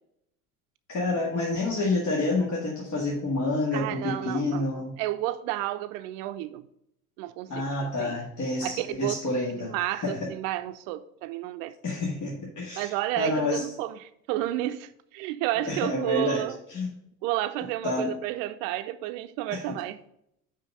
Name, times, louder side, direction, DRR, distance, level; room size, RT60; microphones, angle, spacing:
voice 1, 0.9-4.9 7.5-9.7 10.0-10.3 11.8-13.7 15.7-16.4 16.7-16.9 17.8-18.1 19.5-19.6, left 2 dB, 40° left, 1.8 m, -28 dB
voice 2, 3.7-6.7 7.2-8.2 8.6-11.7 12.7-16.6 17.2-20.0, right 15 dB, 60° right, 0.7 m, -31 dB
5.6 x 5.1 x 6.3 m
hypercardioid pair, 70°, 45 cm